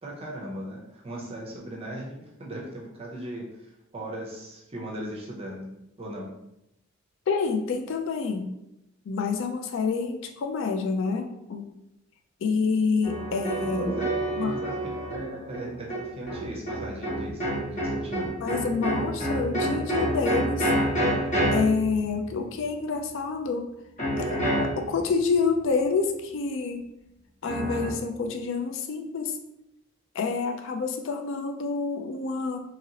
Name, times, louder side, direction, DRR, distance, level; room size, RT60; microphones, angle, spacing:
voice 1, 0.0-5.7 6.0-6.3 13.8-18.3, right 1 dB, 30° right, -3 dB, 0.5 m, -38 dB
voice 2, 7.3-8.5 9.1-11.7 12.4-14.0 14.4-14.5 18.4-20.7 21.5-23.7 24.2-26.8 27.4-29.4 30.1-32.6, left 4 dB, 65° left, 5 dB, 0.4 m, -28 dB
sound 1, 13.0-22.6 24.0-25.2 27.5-27.9, right 1 dB, 40° left, 0.8 m, -28 dB
2.9 x 2.8 x 2.7 m, 0.85 s
head